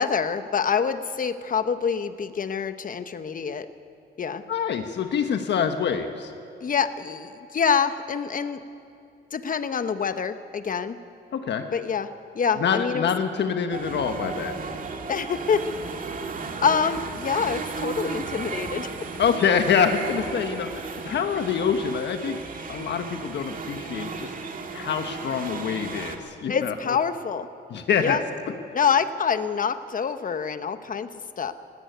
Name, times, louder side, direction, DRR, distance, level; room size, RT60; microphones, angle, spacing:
voice 1, 0.0-3.7 4.2-4.4 6.6-8.6 9.3-11.0 11.7-12.1 12.3-13.1 15.1-15.6 16.6-18.9 26.5-27.5 28.0-28.2 28.7-31.1 31.4-31.5, left 6 dB, 45° left, 10 dB, 1.2 m, -26 dB
voice 2, 4.5-6.3 11.3-11.7 12.6-14.6 19.2-22.4 22.7-24.3 24.7-27.0 27.7-28.2, left 7 dB, 60° left, 6 dB, 1.4 m, -25 dB
sound 1, 13.7-26.2, right 4 dB, 45° right, 2.2 m, -35 dB
19.5 x 16.5 x 9.4 m, 2.5 s
cardioid pair, 90°, 20 cm